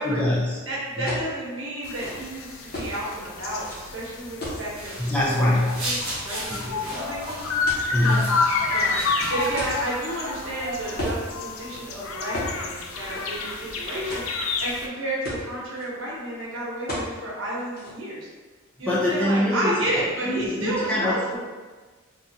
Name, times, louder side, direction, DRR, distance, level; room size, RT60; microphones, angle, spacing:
voice 1, 0.0-0.6 1.0-1.1 5.0-6.0 6.5-6.7 7.9-8.4 18.9-19.9 20.2-21.4, left 1 dB, 5° left, -7 dB, 0.5 m, -24 dB
voice 2, 0.7-6.0 6.2-7.5 7.9-8.3 8.7-18.3 18.8-21.4, right 1 dB, 65° right, -6 dB, 1.0 m, -31 dB
sound 1, 1.1-1.3 1.8-2.9 3.6-3.8 4.4-5.4 6.1-7.2 7.7-8.1 8.8-10.5 11.0-11.2 11.6-11.8 12.3-12.6 12.9-13.7 14.1-14.6 14.9-15.0 15.2-15.8 16.9-17.1 17.5-17.9, left 1 dB, 45° left, 0.9 m, -34 dB
sound 2, 1.8-14.9, left 4 dB, 75° left, 0.4 m, -30 dB
sound 3, 4.7-9.8, right 1 dB, 25° right, 1.1 m, -36 dB
3.7 x 2.4 x 2.7 m, 1.3 s
head